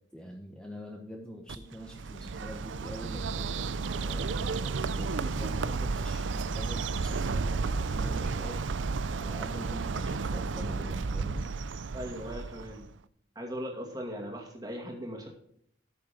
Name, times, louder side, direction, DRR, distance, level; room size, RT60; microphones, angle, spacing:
voice 1, 0.1-3.6 4.0-11.5, equal, 5° left, 0 dB, 1.1 m, -44 dB
Bird, 1.5-12.9, right 4 dB, 85° right, 0.5 m, -32 dB
voice 2, 11.9-12.9 13.4-15.3, equal, 20° right, 0 dB, 2.4 m, -38 dB
13.0 x 6.7 x 5.2 m, 0.68 s
head